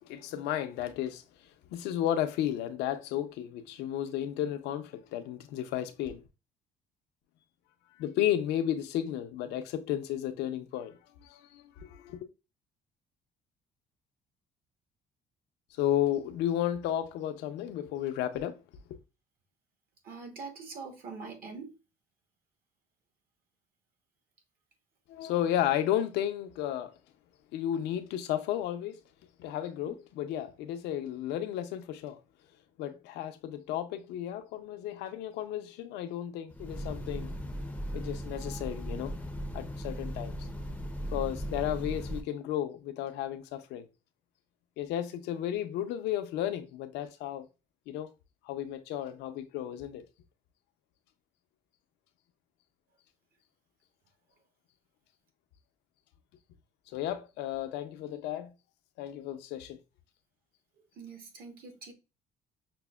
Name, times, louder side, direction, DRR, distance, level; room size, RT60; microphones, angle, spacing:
voice 1, 0.0-6.2 8.0-12.3 15.8-18.6 18.9-19.0 25.1-26.9 27.5-29.0 29.4-32.2 32.8-37.3 37.9-39.1 39.5-40.4 41.1-43.9 44.8-47.5 47.9-48.1 48.4-50.0 56.9-58.5 59.0-59.8, left 11 dB, 90° left, 0.5 m, -33 dB
voice 2, 20.0-21.7 29.8-29.9 61.0-61.9, right 4 dB, 60° right, 1.1 m, -43 dB
Train, 36.5-42.2, equal, 10° left, 0.5 m, -37 dB
5.9 x 2.0 x 2.2 m
cardioid pair, 110°, 17 cm